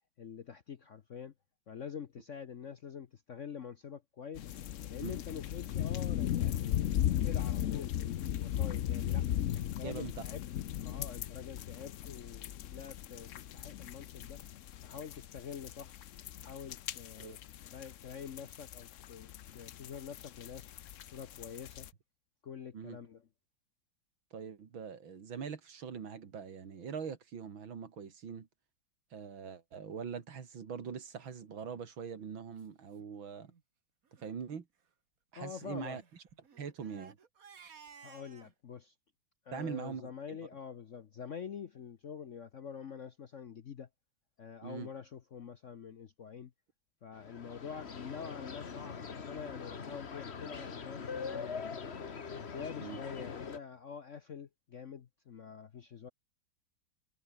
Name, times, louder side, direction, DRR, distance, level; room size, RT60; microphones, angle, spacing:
voice 1, 0.2-1.3 1.7-4.5 4.9-7.0 7.2-9.3 9.6-10.4 10.8-14.4 14.8-16.0 16.4-20.7 21.1-21.9 22.4-23.2 35.4-36.0 38.0-38.9 39.4-43.9 44.4-46.5 47.0-51.8 52.5-56.1, left 7 dB, 50° left, 0.9 m, -46 dB
sound 1, 4.4-21.9, left 11 dB, 90° left, 0.6 m, -37 dB
voice 2, 9.8-10.3 17.2-17.4 22.7-23.0 24.3-28.5 29.1-33.5 34.2-34.7 35.3-36.0 36.6-37.2 39.5-40.4 44.6-44.9 52.8-53.0, right 6 dB, 75° right, 3.0 m, -42 dB
Crying sobbing, 31.6-31.9 32.6-32.7 32.9-33.0 33.4-33.6 34.1-34.3 35.5-38.5, right 6 dB, 45° right, 2.0 m, -57 dB
sound 2, 47.1-53.6, left 5 dB, 35° left, 1.4 m, -42 dB
omnidirectional pair, 2.2 m